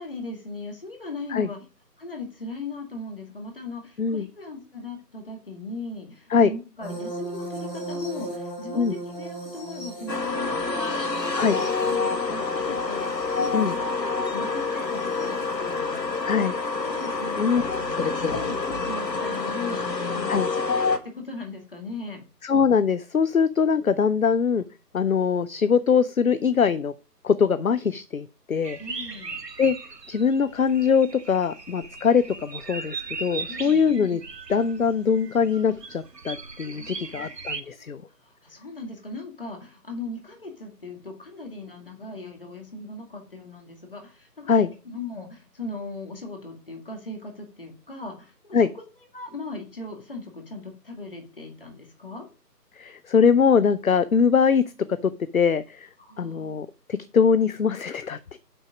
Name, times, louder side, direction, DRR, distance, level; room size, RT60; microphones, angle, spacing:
voice 1, 0.0-1.6 2.0-11.2 11.4-16.5 16.8-22.2 28.8-29.4 33.5-33.9 36.7-48.7 49.1-52.3 56.0-56.5, left 3 dB, 35° left, 3 dB, 1.9 m, -39 dB
sound 1, 6.8-15.5 16.8-17.1 18.8-18.9, right 1 dB, 15° left, 2.9 m, -38 dB
sound 2, 10.1-21.0, left 4 dB, 90° left, 1.7 m, -27 dB
voice 2, 16.2-16.5 17.4-17.6 20.3-20.5 22.4-24.6 24.9-26.9 27.2-28.8 29.6-29.8 30.1-34.2 34.5-38.0 44.5-44.7 48.5-48.7 52.8-54.6 55.0-55.9 56.2-58.4, left 6 dB, 60° left, 14 dB, 0.5 m, -22 dB
sound 3, 28.6-37.6, right 4 dB, 80° right, 1.4 m, -38 dB
7.7 x 6.2 x 5.1 m, 0.35 s
figure-of-eight pair, 170°, 49 cm